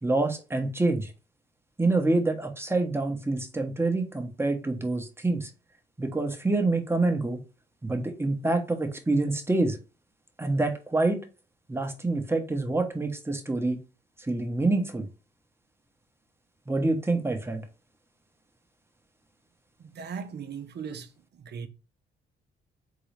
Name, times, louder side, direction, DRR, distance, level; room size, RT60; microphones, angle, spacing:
voice 1, 0.0-1.1 1.8-5.5 6.0-7.4 7.8-9.8 10.4-11.2 11.7-13.8 14.2-15.1 16.7-17.6, right 2 dB, 10° right, 1.1 m, -26 dB
voice 2, 19.8-21.1 21.4-21.7, right 6 dB, 55° right, 0.9 m, -38 dB
3.9 x 3.9 x 3.2 m
cardioid pair, 90°, 20 cm